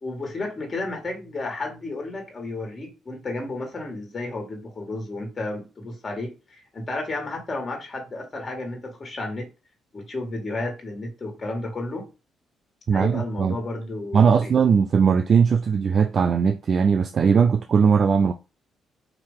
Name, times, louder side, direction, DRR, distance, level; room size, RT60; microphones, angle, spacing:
voice 1, 0.0-9.5 9.9-12.1 12.9-14.5, left 2 dB, 35° left, 1.9 m, -32 dB
voice 2, 12.9-13.5 14.1-18.3, right 6 dB, 50° right, 0.4 m, -19 dB
4.6 x 2.9 x 3.7 m
cardioid pair, 90°, 0 cm